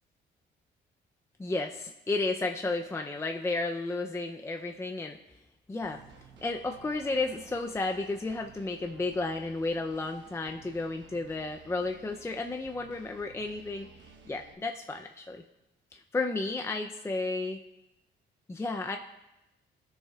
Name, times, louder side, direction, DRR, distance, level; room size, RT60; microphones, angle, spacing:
voice 1, 1.4-5.2 5.7-6.0 6.4-15.4 15.9-17.6 18.5-19.0, left 3 dB, 15° left, 4 dB, 0.5 m, -33 dB
sound 1, 5.8-14.5, right 6 dB, 65° right, 1.1 m, -55 dB
16.5 x 6.6 x 2.3 m, 0.96 s
cardioid pair, 90°, 20 cm